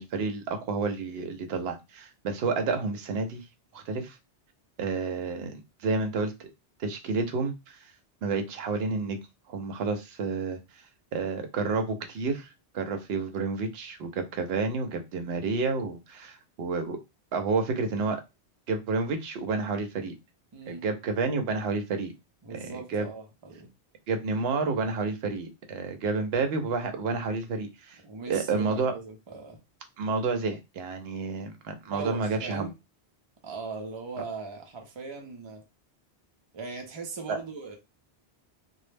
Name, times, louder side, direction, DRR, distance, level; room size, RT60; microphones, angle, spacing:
voice 1, 0.0-3.4 3.7-4.2 4.8-6.5 6.8-7.8 8.2-9.2 9.5-10.6 11.1-17.0 17.3-18.2 18.7-20.1 20.7-22.1 22.9-23.1 24.1-28.0 28.3-28.9 30.0-32.7 37.3-37.4, right 4 dB, 75° right, 0.8 m, -30 dB
voice 2, 20.5-20.8 22.4-23.7 28.0-29.6 31.8-32.7 33.4-35.6 36.5-37.8, right 4 dB, 35° right, 0.5 m, -39 dB
2.2 x 2.0 x 3.2 m
omnidirectional pair, 1.1 m